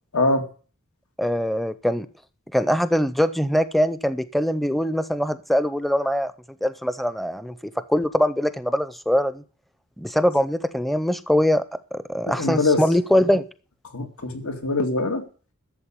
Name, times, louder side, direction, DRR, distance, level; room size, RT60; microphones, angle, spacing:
voice 1, 0.1-0.5 12.3-12.8 13.9-15.2, left 2 dB, 90° left, 5 dB, 2.3 m, -23 dB
voice 2, 1.2-2.1 2.5-6.3 6.6-7.6 7.9-9.4 10.0-11.6 11.9-13.4, equal, ahead, 13 dB, 0.6 m, -22 dB
12.5 x 7.3 x 8.8 m, 0.40 s
head